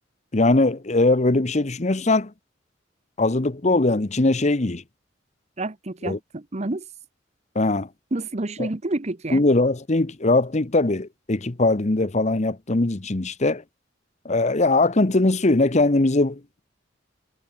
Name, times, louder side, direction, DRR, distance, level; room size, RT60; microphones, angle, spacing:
voice 1, 0.3-2.3 3.2-4.8 6.0-6.2 7.5-7.9 9.3-13.6 14.2-16.6, left 2 dB, 40° left, 1.0 m, -21 dB
voice 2, 5.6-6.9 8.1-9.4, right 2 dB, 35° right, 0.9 m, -29 dB
head